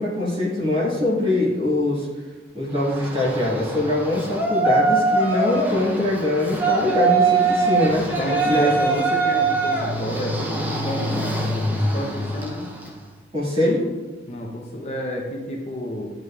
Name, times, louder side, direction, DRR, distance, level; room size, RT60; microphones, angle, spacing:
voice 1, 0.0-2.1 2.5-8.2 8.4-8.7 13.3-13.9, left 1 dB, 30° right, -7 dB, 1.9 m, -22 dB
Yell, 2.7-13.0, right 3 dB, 10° right, 0.6 m, -23 dB
voice 2, 8.2-12.7 14.3-16.1, equal, 35° left, 0 dB, 0.7 m, -30 dB
9.3 x 5.0 x 2.4 m, 1.2 s
head